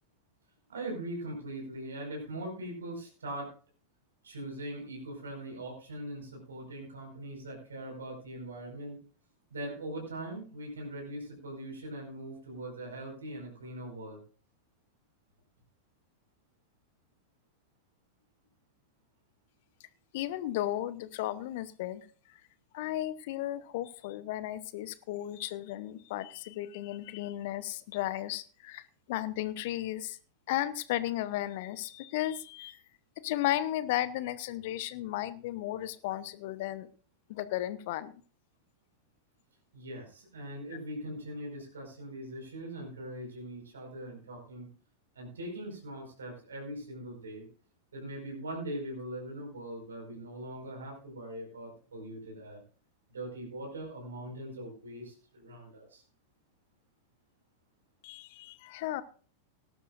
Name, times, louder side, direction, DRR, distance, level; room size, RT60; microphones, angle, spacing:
voice 1, 0.7-3.5 4.2-9.0 9.5-14.2 39.7-44.7 45.1-47.5 47.9-52.6 53.1-56.0, right 1 dB, 70° right, 1 dB, 4.9 m, -41 dB
voice 2, 20.1-22.1 22.7-28.8 29.1-30.2 30.5-32.8 33.2-36.9 37.3-38.1 58.0-59.0, left 14 dB, 50° left, 16 dB, 0.8 m, -34 dB
18.5 x 12.0 x 2.5 m, 0.39 s
figure-of-eight pair, 90°, 0 cm